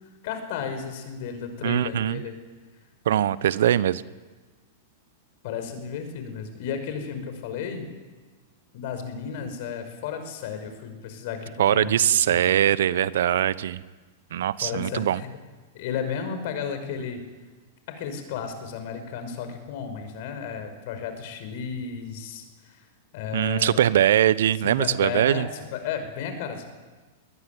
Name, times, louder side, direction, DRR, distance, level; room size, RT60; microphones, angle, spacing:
voice 1, 0.2-2.3 5.4-7.9 8.7-12.0 12.3-12.5 14.6-15.3 15.7-17.2 17.9-22.8 23.1-23.8 24.6-26.7, left 7 dB, 55° left, 8 dB, 5.7 m, -33 dB
voice 2, 1.6-2.2 3.0-4.0 11.6-13.8 14.3-15.2 23.3-25.5, right 11 dB, 70° right, 18 dB, 0.9 m, -22 dB
21.5 x 20.5 x 9.5 m, 1.3 s
hypercardioid pair, 105°, 0 cm